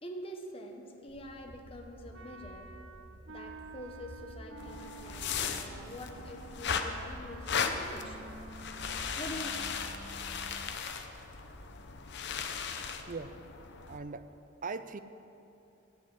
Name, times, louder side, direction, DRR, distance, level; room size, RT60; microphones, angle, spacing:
voice 1, 0.0-2.7 3.3-8.3 8.7-9.8, equal, 30° left, 2 dB, 1.3 m, -46 dB
sound 1, 1.1-10.8, equal, 65° right, 1.7 m, -53 dB
Wind instrument woodwind instrument, 2.1-10.8, right 3 dB, 85° right, 0.8 m, -51 dB
sound 2, 4.6-14.0, left 6 dB, 60° left, 0.9 m, -37 dB
voice 2, 13.8-14.3 14.6-15.0, right 4 dB, 40° right, 12 dB, 0.6 m, -39 dB
15.0 x 7.6 x 7.9 m, 2.8 s
head